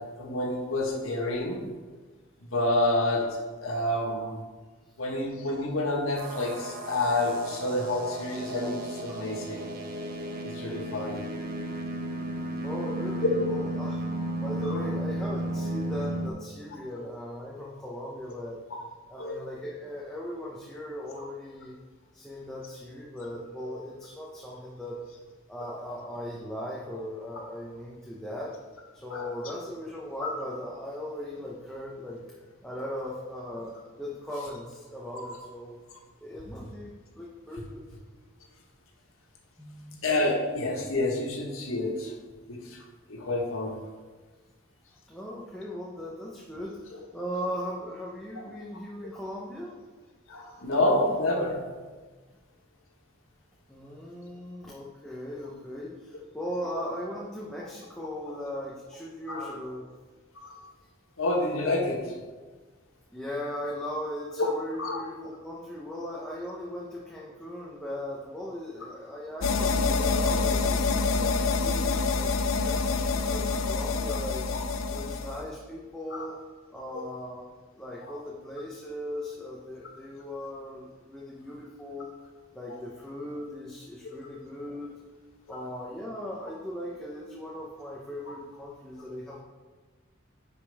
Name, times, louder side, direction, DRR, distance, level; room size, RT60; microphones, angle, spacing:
voice 1, 0.0-1.7 2.5-4.4 5.0-9.7 10.4-11.2 14.6-14.8 19.2-19.4 21.1-21.2 29.1-29.2 40.0-42.1 42.5-42.8 43.1-43.8 50.3-51.7 58.3-58.4 59.3-59.5 60.4-60.6 61.2-62.2 64.4-64.5 64.8-65.0 73.5-73.6 74.1-74.2 76.1-76.3 76.9-77.0 78.1-78.2 84.3-84.4, left 1 dB, 85° left, 0 dB, 1.5 m, -29 dB
sound 1, 6.2-16.3, right 1 dB, 50° right, 1.0 m, -34 dB
voice 2, 12.6-14.0 14.4-18.6 19.1-21.7 22.1-25.0 25.5-28.6 28.9-32.2 32.6-33.7 34.0-35.8 36.2-37.8 39.6-40.0 45.1-49.7 53.7-59.9 63.1-74.4 74.9-76.4 76.7-77.4 77.7-82.1 82.5-84.9 85.5-89.4, left 1 dB, 5° left, -5 dB, 0.9 m, -38 dB
sound 2, 69.4-75.5, left 4 dB, 70° left, 0.6 m, -26 dB
10.0 x 5.2 x 3.5 m, 1.3 s
head